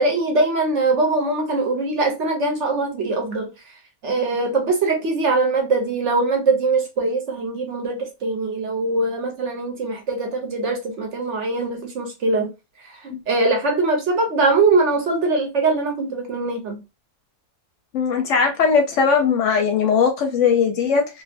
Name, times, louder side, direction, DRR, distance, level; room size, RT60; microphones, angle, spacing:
voice 1, 0.0-3.5 4.0-12.5 12.9-16.8, right 3 dB, 60° right, 0.9 m, -22 dB
voice 2, 17.9-21.1, left 6 dB, 65° left, 0.8 m, -19 dB
2.6 x 2.4 x 2.4 m
omnidirectional pair, 1.5 m